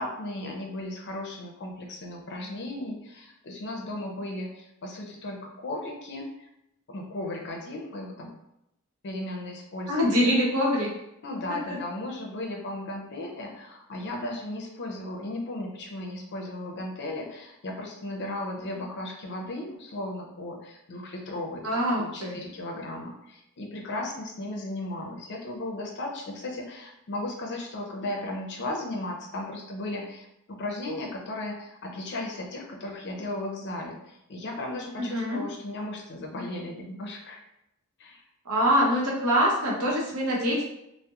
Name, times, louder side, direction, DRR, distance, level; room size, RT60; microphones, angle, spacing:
voice 1, 0.0-6.5 6.9-8.3 9.0-10.3 11.2-37.4 38.0-38.2, left 1 dB, 50° left, 0 dB, 0.5 m, -36 dB
voice 2, 9.9-10.9 11.5-11.6 21.6-22.4 35.0-35.4 38.5-40.6, equal, 80° right, -3 dB, 0.7 m, -24 dB
2.8 x 2.0 x 2.3 m, 0.84 s
head